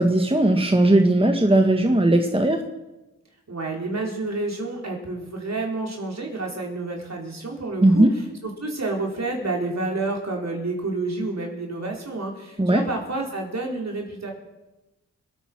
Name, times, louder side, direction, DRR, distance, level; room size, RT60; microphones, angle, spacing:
voice 1, 0.0-2.6 7.8-8.1 12.6-12.8, right 1 dB, 15° right, 4 dB, 1.8 m, -18 dB
voice 2, 3.5-14.3, right 2 dB, 55° right, 0 dB, 4.7 m, -29 dB
24.5 x 9.3 x 6.4 m, 1.0 s
cardioid pair, 50°, 32 cm